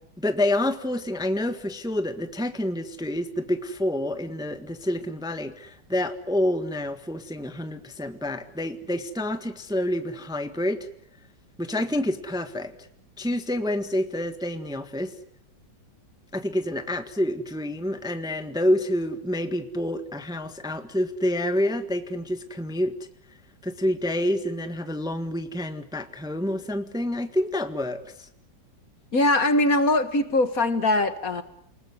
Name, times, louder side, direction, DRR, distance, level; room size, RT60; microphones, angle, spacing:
voice 1, 0.2-10.9 11.6-12.7 13.2-15.1 16.3-22.9 23.6-28.3, left 1 dB, ahead, 8 dB, 1.4 m, -28 dB
voice 2, 29.1-31.4, left 2 dB, 50° left, 10 dB, 2.0 m, -21 dB
29.0 x 19.0 x 9.6 m, 0.70 s
omnidirectional pair, 2.0 m